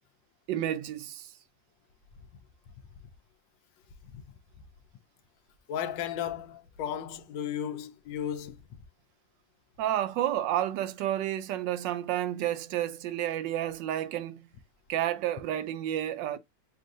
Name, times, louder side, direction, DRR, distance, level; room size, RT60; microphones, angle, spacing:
voice 1, 0.5-1.3 9.8-14.5 14.9-16.4, right 12 dB, 80° right, 1.2 m, -30 dB
voice 2, 5.7-8.6, left 9 dB, 85° left, 1.3 m, -35 dB
6.4 x 2.3 x 2.6 m
omnidirectional pair, 2.0 m